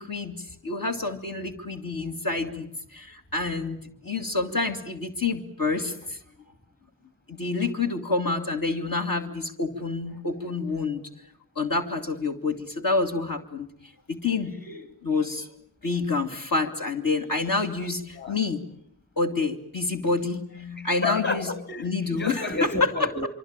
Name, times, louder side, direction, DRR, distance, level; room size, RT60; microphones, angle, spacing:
voice 1, 0.0-3.8 4.0-6.2 7.3-11.0 11.6-13.7 14.1-15.5 15.8-18.6 19.2-21.5 21.8-22.7, left 3 dB, 60° left, 2.6 m, -28 dB
voice 2, 20.8-23.3, left 3 dB, 30° left, 2.9 m, -30 dB
25.0 x 24.5 x 9.0 m
cardioid pair, 45°, 38 cm